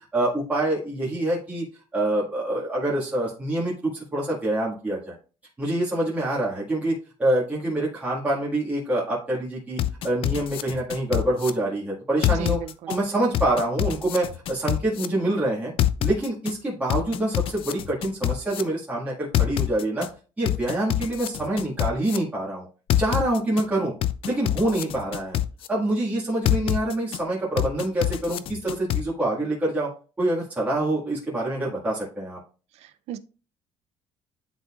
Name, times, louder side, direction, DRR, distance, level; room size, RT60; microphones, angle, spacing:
voice 1, 0.1-1.6 1.9-5.2 5.6-6.9 7.2-12.6 12.9-15.7 16.0-20.1 20.4-22.7 23.0-23.9 24.2-25.4 25.7-29.9 30.2-32.4, right 1 dB, 15° right, 1.9 m, -26 dB
sound 1, 9.8-11.5 12.2-13.0 13.3-15.1 15.8-16.5 16.9-18.6 19.3-20.1 20.5-22.2 22.9-23.6 24.0-25.7 26.5-27.2 27.6-29.0, left 12 dB, 55° left, 0.5 m, -25 dB
voice 2, 12.3-12.9 32.7-33.2, right 10 dB, 70° right, 0.5 m, -36 dB
10.5 x 4.0 x 2.4 m
cardioid pair, 145°, 11 cm